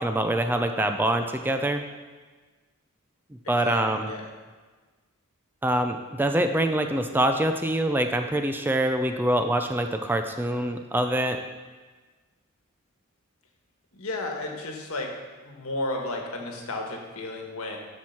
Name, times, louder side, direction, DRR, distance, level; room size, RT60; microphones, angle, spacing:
voice 1, 0.0-1.8 3.5-4.1 5.6-11.4, right 1 dB, 10° right, 6 dB, 0.4 m, -25 dB
voice 2, 3.4-4.2 13.9-15.1 15.4-17.8, left 2 dB, 75° left, 2 dB, 1.4 m, -33 dB
7.4 x 6.2 x 5.8 m, 1.3 s
head